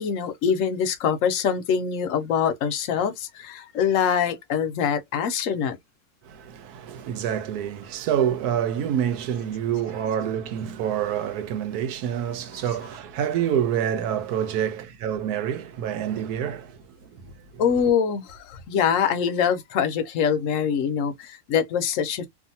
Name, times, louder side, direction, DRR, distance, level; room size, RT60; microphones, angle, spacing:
voice 1, 0.0-5.8 17.6-22.3, left 7 dB, 65° left, 0.9 m, -24 dB
voice 2, 6.2-17.4, right 9 dB, 75° right, 1.1 m, -27 dB
2.6 x 2.5 x 2.7 m
omnidirectional pair, 1.7 m